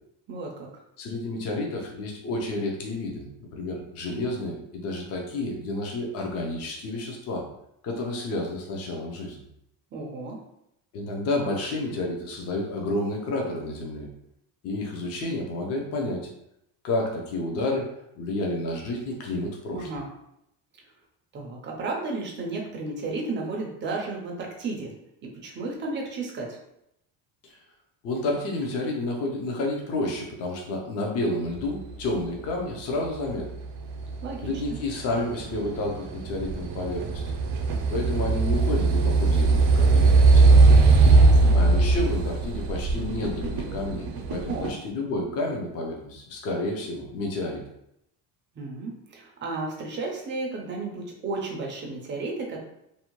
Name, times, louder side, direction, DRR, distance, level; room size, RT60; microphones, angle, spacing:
voice 1, 0.3-0.7 9.9-10.4 19.7-20.1 21.3-24.9 25.2-26.6 34.2-34.8 41.1-41.6 44.5-44.8 48.6-52.6, right 3 dB, 30° right, 0 dB, 0.4 m, -33 dB
voice 2, 1.0-7.4 7.8-9.4 10.9-14.1 14.6-16.3 16.8-17.9 18.1-19.9 27.5-27.6 28.0-33.5 34.4-37.2 37.9-40.6 41.5-47.6, left 2 dB, 35° left, 1 dB, 0.5 m, -30 dB
sound 1, 33.3-44.7, right 3 dB, 80° right, 0.6 m, -20 dB
2.7 x 2.1 x 2.9 m, 0.80 s
cardioid pair, 170°, 43 cm